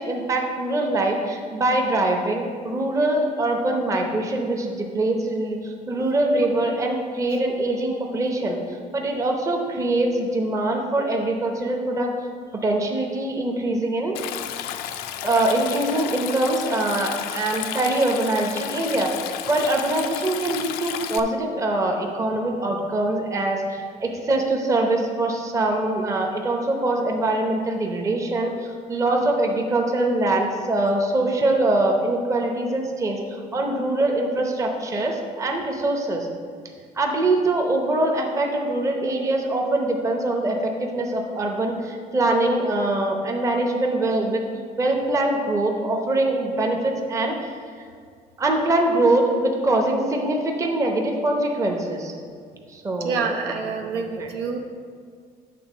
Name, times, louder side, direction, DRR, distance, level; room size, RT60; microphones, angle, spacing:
voice 1, 0.0-8.6 8.9-12.1 12.6-14.2 15.2-19.1 19.5-36.3 37.0-44.4 44.8-47.4 48.4-52.1 52.7-53.3 53.9-54.3, right 2 dB, 20° right, 2 dB, 0.8 m, -23 dB
Stream, 14.1-21.2, left 10 dB, 90° left, 0.4 m, -32 dB
voice 2, 53.0-54.6, right 5 dB, 85° right, 2 dB, 0.9 m, -27 dB
8.5 x 3.7 x 6.1 m, 2.1 s
cardioid pair, 155°, 16 cm